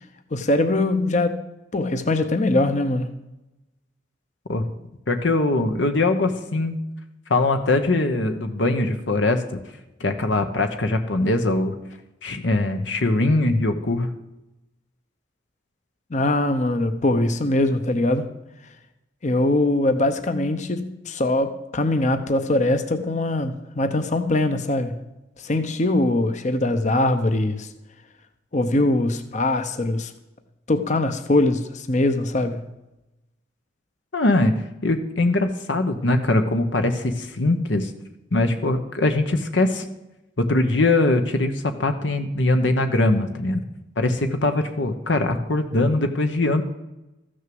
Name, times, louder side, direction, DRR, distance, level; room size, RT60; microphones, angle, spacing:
voice 1, 0.3-1.4 1.7-3.1 16.1-18.3 19.2-25.0 25.4-27.7 28.5-30.1 30.7-32.7, left 2 dB, 40° left, 8 dB, 0.8 m, -22 dB
voice 2, 5.1-6.8 7.3-9.6 10.0-11.7 12.2-14.1 34.1-34.5 34.8-37.9 38.3-39.8 40.4-43.6 44.0-46.6, left 2 dB, 80° left, 7 dB, 1.0 m, -21 dB
14.0 x 6.5 x 7.7 m, 0.94 s
head